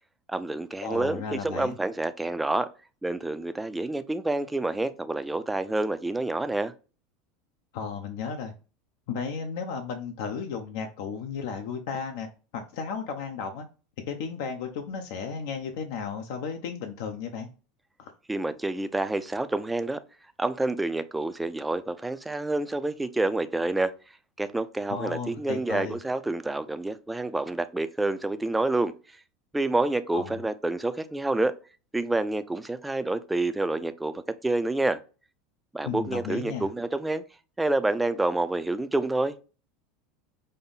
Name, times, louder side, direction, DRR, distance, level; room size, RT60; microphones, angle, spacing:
voice 1, 0.3-2.7 3.0-6.7 18.3-20.0 20.4-23.9 24.4-28.9 29.5-31.5 31.9-34.1 34.4-35.0 35.7-37.2 37.6-39.4, right 2 dB, 5° right, 0.3 m, -28 dB
voice 2, 0.8-1.8 7.7-8.5 9.1-12.3 12.5-13.7 14.1-17.5 18.0-18.1 24.9-25.9 30.1-30.4 35.8-36.7, left 6 dB, 75° left, 0.7 m, -34 dB
5.3 x 2.0 x 3.9 m
supercardioid pair, 130°, 0 cm